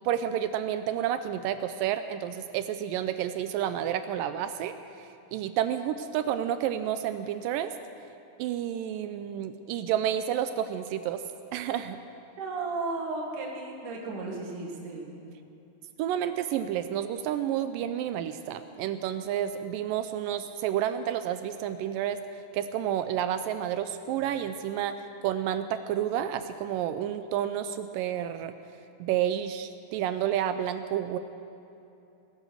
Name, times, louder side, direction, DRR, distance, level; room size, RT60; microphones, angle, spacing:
voice 1, 0.1-7.7 8.4-11.2 11.5-12.0 16.0-22.2 22.5-28.5 29.0-31.2, right 10 dB, 80° right, 10 dB, 2.0 m, -30 dB
voice 2, 12.4-15.1, right 3 dB, 60° right, -1 dB, 3.2 m, -34 dB
19.5 x 11.0 x 6.5 m, 2.8 s
omnidirectional pair, 4.3 m